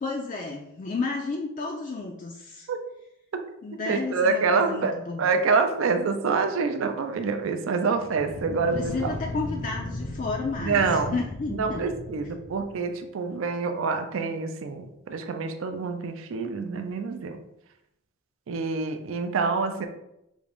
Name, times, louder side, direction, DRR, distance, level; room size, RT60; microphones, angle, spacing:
voice 1, 0.0-2.7 3.6-5.2 8.5-11.8, left 3 dB, 40° left, 0 dB, 0.3 m, -32 dB
voice 2, 3.9-4.9 5.2-9.1 10.6-11.2 11.5-17.4 18.5-19.9, right 4 dB, 70° right, 7 dB, 0.4 m, -26 dB
sound 1, 7.9-12.8, left 1 dB, 75° left, 0.6 m, -36 dB
3.5 x 2.5 x 3.4 m, 0.81 s
head